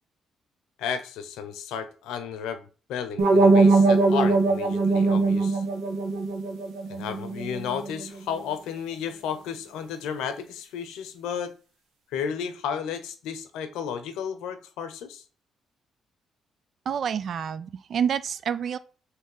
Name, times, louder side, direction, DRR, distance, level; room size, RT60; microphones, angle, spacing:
voice 1, 0.8-2.6 2.9-5.6 6.9-11.5 12.1-15.2, left 7 dB, 85° left, 0.6 m, -33 dB
sound 1, 3.2-8.1, right 3 dB, 85° right, 1.1 m, -21 dB
voice 2, 16.9-18.8, right 8 dB, 65° right, 0.4 m, -28 dB
3.3 x 3.2 x 4.8 m
supercardioid pair, 65°, 0 cm